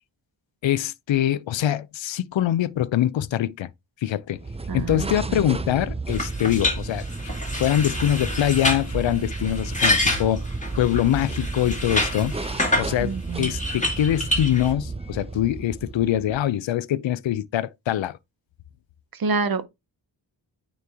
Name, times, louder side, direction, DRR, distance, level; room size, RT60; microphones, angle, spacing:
voice 1, 0.6-3.7 4.0-4.4 4.7-7.1 7.6-10.5 10.8-18.2, left 11 dB, 80° left, 0.6 m, -24 dB
sound 1, 4.3-16.5, right 3 dB, 15° right, 0.4 m, -32 dB
voice 2, 4.7-5.4 13.0-13.5 19.1-19.7, right 4 dB, 50° right, 0.8 m, -28 dB
sound 2, 6.1-12.9 13.4-14.7, left 1 dB, 15° left, 2.3 m, -27 dB
9.3 x 3.2 x 3.5 m
wide cardioid pair, 135°, 45 cm